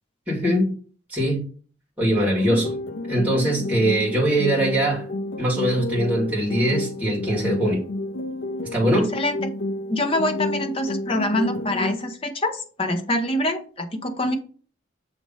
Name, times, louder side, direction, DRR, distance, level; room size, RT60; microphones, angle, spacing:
voice 1, 0.3-0.7 1.1-1.5 2.0-2.7 3.1-5.1 5.4-7.8 8.7-9.1, right 1 dB, 10° right, 2.0 m, -22 dB
sound 1, 2.1-12.1, left 1 dB, 60° left, 0.6 m, -30 dB
voice 2, 9.1-9.5 9.9-14.4, left 1 dB, 30° left, 0.8 m, -25 dB
6.7 x 3.1 x 5.4 m
head